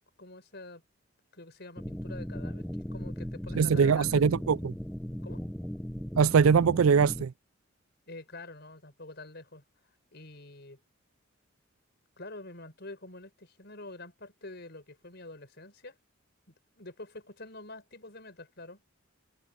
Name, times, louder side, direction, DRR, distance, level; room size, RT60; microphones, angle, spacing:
voice 1, 0.2-0.8 1.3-4.3 5.2-5.4 8.1-9.6 10.1-10.8 12.2-16.0 16.5-18.8, left 2 dB, 55° left, 5.9 m, -46 dB
sound 1, 1.8-7.2, equal, 5° left, 0.7 m, -37 dB
voice 2, 3.6-4.7 6.1-7.3, right 6 dB, 90° right, 0.4 m, -22 dB
head